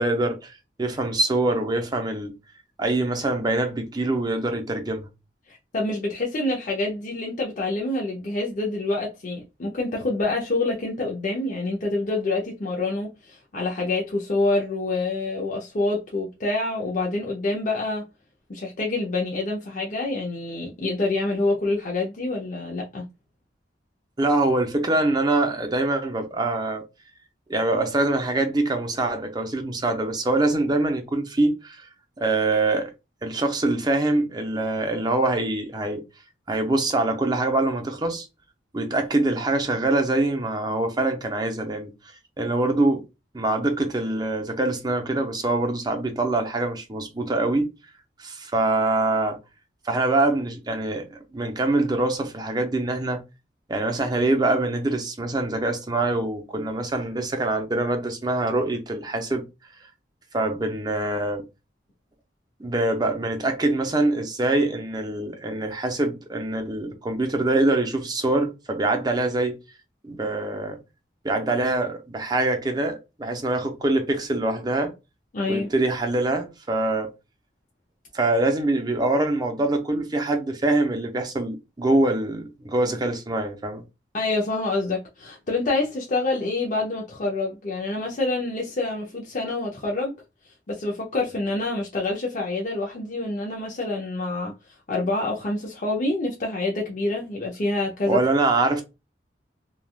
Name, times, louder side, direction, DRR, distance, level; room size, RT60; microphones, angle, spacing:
voice 1, 0.0-2.3 2.8-5.1 24.2-26.8 27.5-31.9 32.2-32.9 33.2-36.0 36.5-38.3 38.7-41.9 42.4-43.0 43.3-47.7 48.2-49.4 49.8-53.2 53.7-59.4 60.3-61.4 62.6-69.6 70.0-70.8 71.2-74.9 75.5-77.1 78.1-83.8 98.1-98.8, right 2 dB, 25° right, 0.6 m, -24 dB
voice 2, 5.5-18.0 18.5-23.0 75.3-75.7 84.1-90.1 90.7-94.5 94.9-98.2, left 2 dB, 45° left, 0.6 m, -27 dB
3.2 x 2.3 x 2.3 m
head